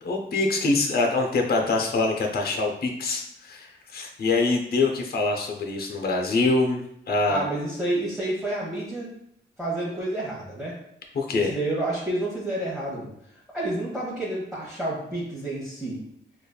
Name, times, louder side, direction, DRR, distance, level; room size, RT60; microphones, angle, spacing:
voice 1, 0.0-3.7 3.9-7.5 11.2-11.5, left 3 dB, 50° left, 2 dB, 0.6 m, -24 dB
voice 2, 7.3-9.1 9.6-10.8 11.3-16.0, right 1 dB, ahead, -8 dB, 1.0 m, -29 dB
5.0 x 2.3 x 2.3 m, 0.74 s
wide cardioid pair, 95°, 20 cm